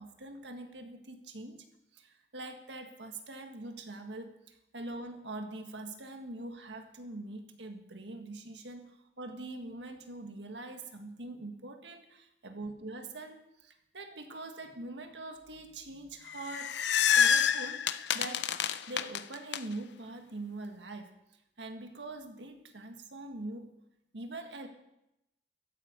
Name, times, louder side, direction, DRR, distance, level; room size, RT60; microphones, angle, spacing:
voice 1, 0.0-1.6 1.9-16.8 17.2-17.9 18.1-21.1 21.6-23.7 24.1-24.7, right 2 dB, 85° right, 5 dB, 1.7 m, -43 dB
sound 1, 16.3-19.6, left 8 dB, 75° left, 0.6 m, -27 dB
14.5 x 11.0 x 5.2 m, 0.86 s
head